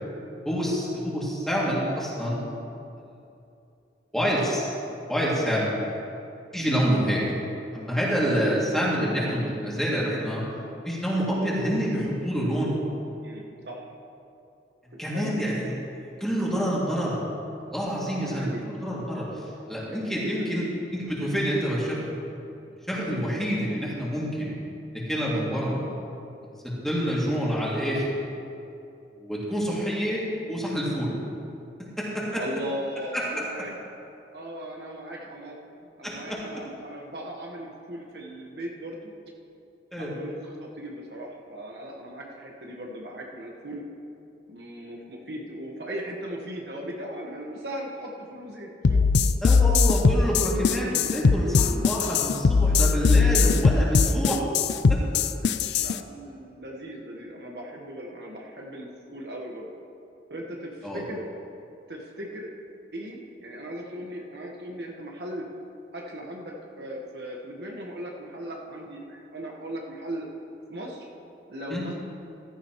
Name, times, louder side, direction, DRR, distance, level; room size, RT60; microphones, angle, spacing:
voice 1, 0.4-2.4 4.1-5.8 6.5-7.2 7.7-10.4 10.8-12.7 15.0-15.8 16.2-17.2 17.7-19.3 19.7-20.7 21.0-22.1 22.9-24.5 24.9-25.8 26.6-28.1 29.1-31.1 32.0-32.4 33.1-33.2 36.0-36.4 39.9-40.1 49.4-54.4 60.8-61.0 71.7-71.8, equal, ahead, -6 dB, 2.5 m, -27 dB
voice 2, 13.2-13.9 15.0-15.4 18.2-18.7 19.6-20.6 32.4-33.7 34.3-39.1 39.9-43.8 44.5-49.0 55.4-59.7 60.3-61.2 61.9-62.5 62.9-65.5 65.9-70.3 70.7-71.1 71.5-71.9, equal, 65° right, -1 dB, 1.5 m, -38 dB
sound 1, 48.8-55.9, left 4 dB, 70° left, 0.4 m, -20 dB
15.0 x 13.5 x 3.1 m, 2.7 s
head